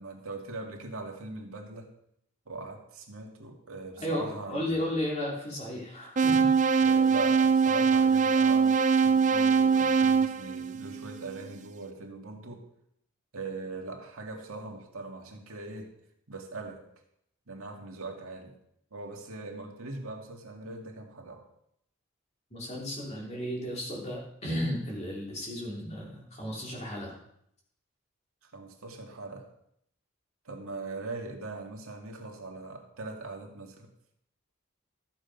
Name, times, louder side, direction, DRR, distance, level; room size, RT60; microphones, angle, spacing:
voice 1, 0.0-1.9 2.5-4.9 6.8-12.7 13.3-15.9 16.3-16.8 17.5-18.5 18.9-21.5 28.5-29.5 30.4-33.9, right 3 dB, 85° right, 1 dB, 2.1 m, -41 dB
voice 2, 4.0-6.4 22.5-27.2, left 1 dB, 30° left, -2 dB, 3.1 m, -34 dB
sound 1, 6.2-11.3, right 5 dB, 35° right, 0.5 m, -23 dB
13.5 x 7.6 x 5.4 m, 0.72 s
head